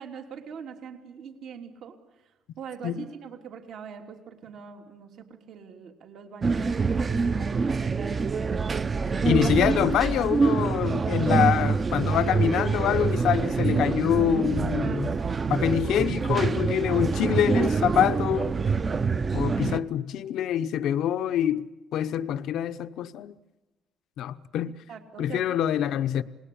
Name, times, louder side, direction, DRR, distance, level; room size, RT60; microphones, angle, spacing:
voice 1, 0.0-8.6 14.6-15.7 24.7-25.5, right 7 dB, 70° right, 3.1 m, -43 dB
sound 1, 6.4-19.8, right 5 dB, 30° right, 0.8 m, -25 dB
voice 2, 9.2-15.1 15.5-18.5 19.3-23.3 24.2-24.7 25.2-26.2, left 10 dB, 75° left, 0.8 m, -25 dB
28.0 x 19.5 x 8.7 m
cardioid pair, 110°, 0 cm